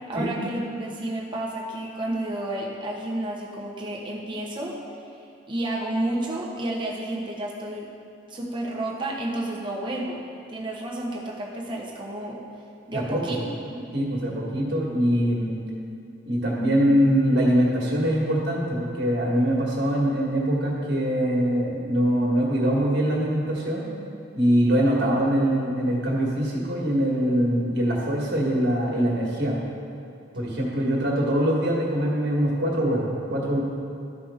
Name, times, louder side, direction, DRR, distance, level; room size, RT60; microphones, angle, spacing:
voice 1, 0.1-4.8 5.5-7.9 8.3-10.2 10.5-12.4 12.9-13.4, right 1 dB, 25° right, -3 dB, 1.1 m, -31 dB
voice 2, 12.9-13.4 13.9-15.6 16.2-23.9 24.3-29.6 30.3-33.6, equal, 60° right, -4 dB, 1.8 m, -23 dB
13.0 x 5.0 x 3.6 m, 2.6 s
head